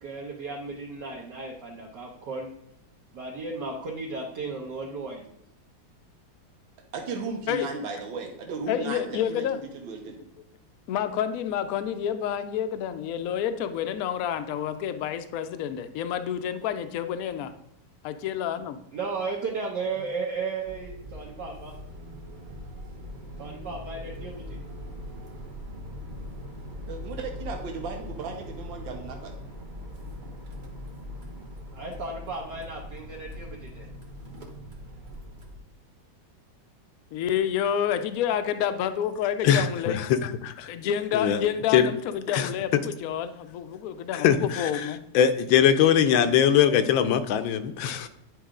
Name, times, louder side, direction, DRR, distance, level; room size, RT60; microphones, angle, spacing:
voice 1, 0.0-2.5 3.1-5.3 18.9-21.7 23.4-24.6 31.7-33.9, right 4 dB, 65° right, -3 dB, 1.6 m, -34 dB
voice 2, 6.9-9.4 9.9-10.2 26.9-29.3, right 4 dB, 85° right, 2 dB, 1.7 m, -35 dB
voice 3, 8.7-9.6 10.9-17.5 18.0-18.8 37.1-40.0 40.6-45.0, left 9 dB, 70° left, 10 dB, 0.8 m, -29 dB
sound 1, 20.6-35.6, left 1 dB, 35° right, 0.8 m, -41 dB
voice 4, 44.2-44.7 45.1-48.1, left 9 dB, 85° left, 10 dB, 1.4 m, -21 dB
10.0 x 4.7 x 3.7 m, 0.76 s
omnidirectional pair, 2.0 m